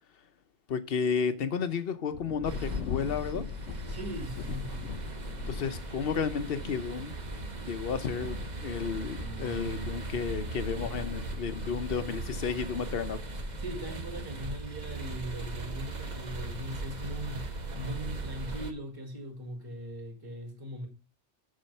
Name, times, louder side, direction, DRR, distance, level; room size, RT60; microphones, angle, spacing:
voice 1, 0.7-3.4 5.5-7.1 7.7-8.4 8.6-13.2, left 6 dB, 55° left, 1.0 m, -32 dB
Thunder, 2.1-18.2 18.9-19.0 19.6-20.0, left 10 dB, 85° left, 0.9 m, -44 dB
sound 1, 2.4-18.7, right 2 dB, 40° right, 1.1 m, -38 dB
voice 2, 3.9-4.7 13.6-17.5 17.7-20.9, equal, 20° right, 2.1 m, -40 dB
Bass guitar, 9.2-15.5, right 5 dB, 5° left, 1.5 m, -50 dB
7.4 x 6.2 x 5.5 m
omnidirectional pair, 1.2 m